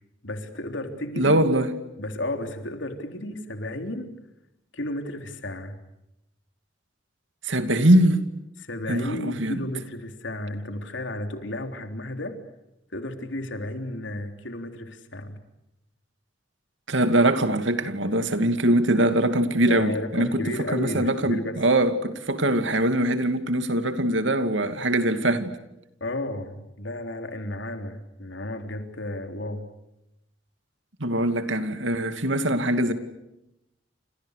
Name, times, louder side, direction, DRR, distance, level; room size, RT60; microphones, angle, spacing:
voice 1, 0.2-1.3 2.0-4.1 4.7-5.8 8.6-12.4 12.9-15.4 19.6-21.6 26.0-29.7, left 1 dB, 80° left, 3.7 m, -33 dB
voice 2, 1.2-1.7 7.4-8.2 8.9-9.6 16.9-25.5 31.0-32.9, right 1 dB, 85° right, 2.5 m, -22 dB
30.0 x 27.5 x 6.6 m
head